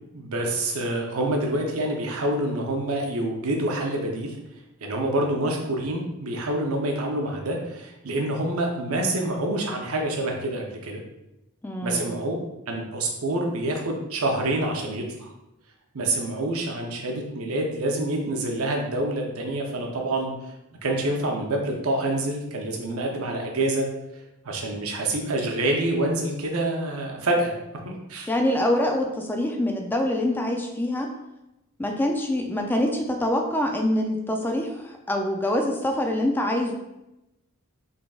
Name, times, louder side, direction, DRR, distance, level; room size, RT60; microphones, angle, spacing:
voice 1, 0.1-4.4 4.8-11.0 11.8-12.4 12.7-15.3 15.9-20.3 20.8-23.9 24.4-27.5 27.8-28.3, right 1 dB, 85° right, 1 dB, 0.7 m, -27 dB
voice 2, 11.6-12.1 28.3-31.1 31.8-36.7, left 1 dB, 10° left, 2 dB, 0.3 m, -25 dB
3.9 x 3.5 x 2.4 m, 0.92 s
head